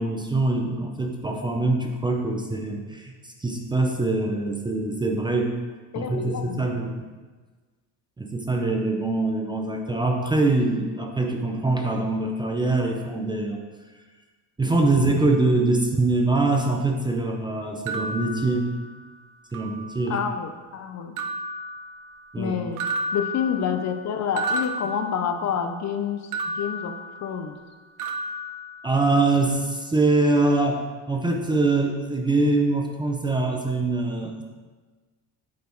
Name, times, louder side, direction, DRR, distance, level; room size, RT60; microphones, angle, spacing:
voice 1, 0.0-5.6 6.0-7.1 8.2-13.6 14.6-18.7 19.5-20.2 22.3-22.6 28.8-34.4, right 2 dB, 10° right, 2 dB, 0.5 m, -24 dB
voice 2, 5.9-6.6 20.1-21.2 22.4-22.8 23.1-26.3 26.5-26.9 27.2-27.6, left 7 dB, 45° left, 7 dB, 0.6 m, -28 dB
sound 1, 17.9-19.1 19.5-20.3 21.2-22.4 22.8-25.7 26.3-27.7 28.0-29.3, right 1 dB, 50° right, 0.7 m, -33 dB
8.4 x 4.2 x 4.5 m, 1.4 s
cardioid pair, 130°, 39 cm